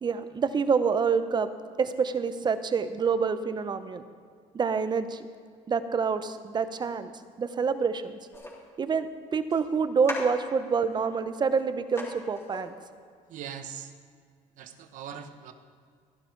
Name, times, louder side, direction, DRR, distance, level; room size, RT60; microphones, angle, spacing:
voice 1, 0.0-1.5 1.8-4.0 4.5-5.2 5.7-7.1 7.4-8.2 8.8-12.7, right 5 dB, 30° right, 11 dB, 0.8 m, -27 dB
Coffee Cup On Table Bounce Lid Drop Rattle, 8.3-8.5 9.5-9.6 10.0-11.1 11.5-11.6 12.0-12.1 12.3-12.7, left 1 dB, 20° left, 3.8 m, -38 dB
voice 2, 13.3-13.9 14.6-15.5, right 8 dB, 70° right, 9 dB, 1.1 m, -41 dB
14.0 x 11.5 x 4.7 m, 2.1 s
cardioid pair, 100°, 14 cm